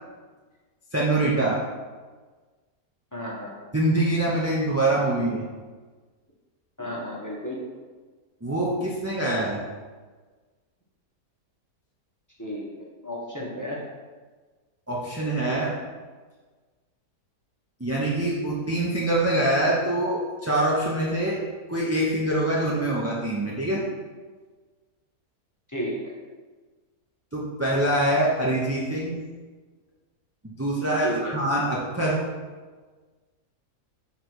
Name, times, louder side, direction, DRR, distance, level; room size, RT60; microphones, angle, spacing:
voice 1, 0.9-1.6 3.7-5.4 8.4-9.6 14.9-15.8 17.8-21.4 21.7-23.8 27.3-29.2 30.4-32.2, right 1 dB, 15° right, -5 dB, 0.5 m, -24 dB
voice 2, 3.1-3.5 6.8-7.6 12.4-13.8 25.7-26.0 31.0-31.3, equal, 15° left, -4 dB, 1.1 m, -33 dB
6.9 x 3.4 x 6.1 m, 1.4 s
omnidirectional pair, 1.8 m